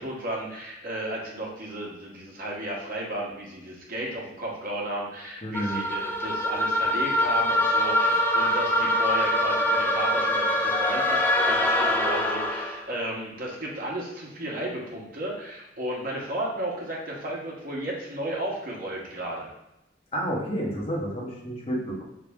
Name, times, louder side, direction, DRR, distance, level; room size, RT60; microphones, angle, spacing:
voice 1, 0.0-19.5, right 1 dB, 50° right, -3 dB, 1.1 m, -34 dB
voice 2, 5.4-5.8 8.1-8.2 20.1-22.0, equal, 35° left, -3 dB, 1.0 m, -30 dB
sound 1, 5.5-12.8, left 1 dB, 10° left, 0.4 m, -24 dB
3.6 x 3.3 x 3.5 m, 0.90 s
head